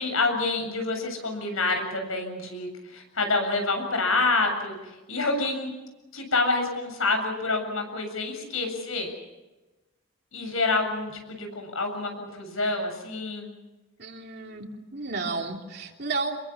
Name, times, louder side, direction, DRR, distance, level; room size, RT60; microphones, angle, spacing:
voice 1, 0.0-5.7 6.1-9.1 10.3-13.5, left 3 dB, 85° left, 5 dB, 7.5 m, -27 dB
voice 2, 14.0-16.4, right 3 dB, 50° right, 2 dB, 3.3 m, -32 dB
27.5 x 22.5 x 7.3 m, 1.1 s
head